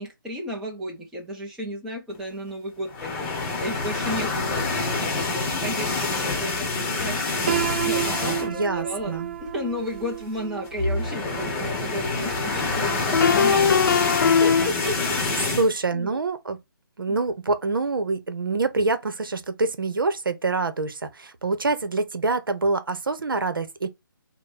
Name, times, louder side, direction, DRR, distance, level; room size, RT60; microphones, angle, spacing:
voice 1, 0.0-7.5 7.8-16.2 17.0-17.2, equal, 5° right, 0.7 m, -34 dB
sound 1, 2.9-8.7 9.1-9.2 9.5-9.6 10.7-15.7, left 3 dB, 15° left, 1.0 m, -27 dB
Piano, 7.5-13.3, right 10 dB, 30° right, 0.3 m, -32 dB
voice 2, 8.5-9.4 15.5-16.6 17.0-23.9, right 3 dB, 70° right, 0.9 m, -26 dB
sound 2, 11.8-11.9 13.1-15.1, left 6 dB, 60° left, 0.4 m, -20 dB
5.2 x 2.2 x 4.1 m
figure-of-eight pair, 155°, 12 cm